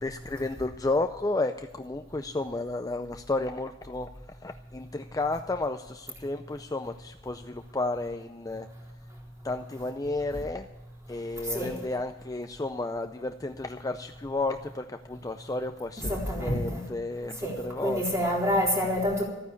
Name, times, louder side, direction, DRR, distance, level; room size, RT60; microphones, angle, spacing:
voice 1, 0.0-4.1 4.4-8.7 9.4-10.7 11.1-18.0, left 2 dB, 20° left, 7 dB, 0.5 m, -32 dB
voice 2, 16.0-16.8 17.4-17.6 17.8-19.2, equal, 15° right, -2 dB, 3.9 m, -27 dB
14.0 x 9.6 x 8.4 m, 1.1 s
head